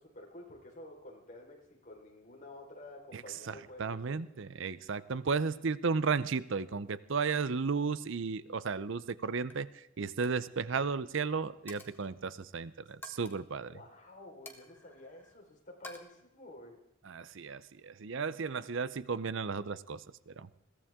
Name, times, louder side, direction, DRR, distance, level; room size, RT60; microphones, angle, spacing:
voice 1, 0.0-4.2 13.7-16.8, left 1 dB, 40° left, 0 dB, 4.3 m, -51 dB
voice 2, 3.5-13.7 17.0-20.5, right 5 dB, 60° right, 16 dB, 0.6 m, -34 dB
Coin (dropping), 9.0-9.2 9.5-9.7 10.1-10.4 10.7-10.9 11.7-12.1 13.0-13.4 14.5-15.4 15.8-16.0, left 2 dB, 10° left, 1.7 m, -50 dB
21.5 x 16.5 x 3.6 m, 0.79 s
head